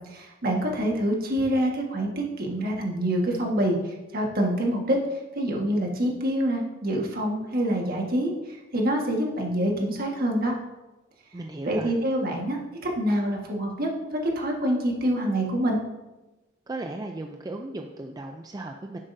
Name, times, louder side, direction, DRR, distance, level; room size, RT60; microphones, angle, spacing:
voice 1, 0.1-5.0 5.3-10.5 11.7-12.6 13.0-15.8, right 1 dB, 50° right, 0 dB, 1.6 m, -26 dB
voice 2, 11.3-11.9 16.7-19.0, right 2 dB, 20° right, 3 dB, 0.4 m, -36 dB
10.0 x 7.4 x 2.7 m, 1.1 s
head